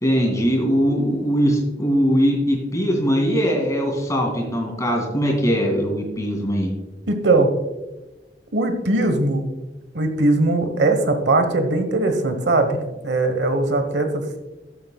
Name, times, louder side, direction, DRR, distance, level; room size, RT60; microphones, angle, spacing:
voice 1, 0.0-6.7, equal, 20° left, 1 dB, 2.3 m, -21 dB
voice 2, 7.1-7.5 8.5-9.5 9.9-14.4, right 2 dB, 75° right, 7 dB, 1.2 m, -20 dB
13.5 x 7.9 x 2.3 m, 1.1 s
head